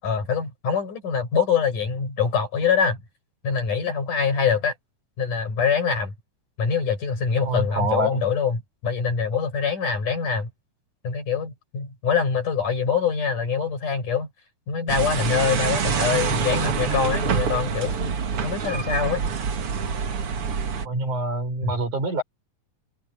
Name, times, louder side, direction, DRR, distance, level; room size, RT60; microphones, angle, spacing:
voice 1, 0.0-3.0 3.4-4.7 5.2-6.1 6.6-10.5 11.0-14.3 14.7-18.2 18.4-19.2 21.6-21.7, left 6 dB, 75° left, 8.2 m, -24 dB
voice 2, 7.5-8.2 20.8-22.2, right 2 dB, 70° right, 7.9 m, -26 dB
sound 1, 14.9-20.9, right 6 dB, 50° right, 2.4 m, -26 dB
omnidirectional pair, 3.6 m